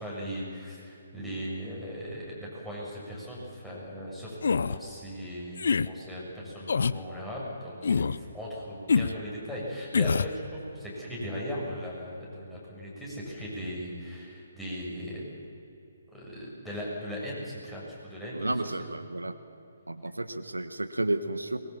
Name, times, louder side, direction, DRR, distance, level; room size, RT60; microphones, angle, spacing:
voice 1, 0.0-15.4 16.1-18.8, equal, 5° left, -5 dB, 7.3 m, -38 dB
sound 1, 4.4-4.8 5.6-5.9 6.7-7.0 7.8-8.2 8.9-9.2 9.9-10.3, left 5 dB, 60° left, 0.6 m, -25 dB
voice 2, 18.3-19.3 19.9-21.6, right 2 dB, 80° right, 10 dB, 1.3 m, -31 dB
24.0 x 21.5 x 7.3 m, 2.9 s
figure-of-eight pair, 135°, 0 cm